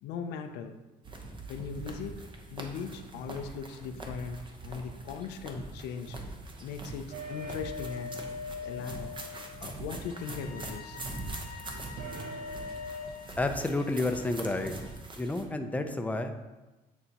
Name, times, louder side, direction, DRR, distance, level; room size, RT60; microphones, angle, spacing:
voice 1, 0.0-0.8 1.5-2.2 2.5-6.2 6.6-8.2 8.6-9.1 9.6-11.4 11.7-11.8, left 6 dB, 90° left, 6 dB, 0.5 m, -39 dB
sound 1, 1.0-15.5, right 2 dB, 30° right, 0.9 m, -43 dB
sound 2, 7.1-10.1 12.0-13.1, left 3 dB, 65° right, 0.7 m, -40 dB
sound 3, 9.9-15.1, left 7 dB, 60° left, 0.8 m, -50 dB
voice 2, 13.4-14.7 15.2-16.4, left 2 dB, 10° left, 6 dB, 0.5 m, -30 dB
8.9 x 4.0 x 2.9 m, 1.1 s
cardioid pair, 110°, 17 cm